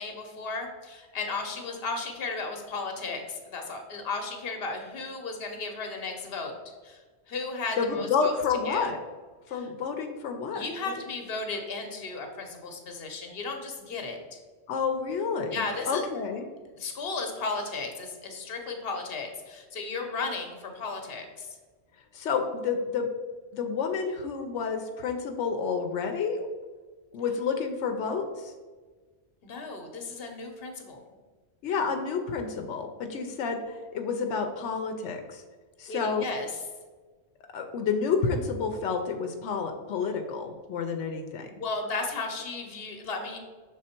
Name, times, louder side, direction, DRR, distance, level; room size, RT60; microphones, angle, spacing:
voice 1, 0.0-6.5 6.8-8.3 8.6-8.9 9.5-9.7 10.5-14.4 15.5-16.0 16.8-21.6 29.4-31.0 35.9-36.5 41.6-43.4, left 3 dB, 60° left, 4 dB, 1.1 m, -35 dB
voice 2, 7.8-9.0 9.5-11.0 14.7-16.4 22.1-23.1 23.5-26.5 27.1-28.5 31.6-35.4 35.8-36.2 37.5-41.5, left 5 dB, 90° left, 5 dB, 0.9 m, -30 dB
6.2 x 3.9 x 4.3 m, 1.4 s
omnidirectional pair, 1.2 m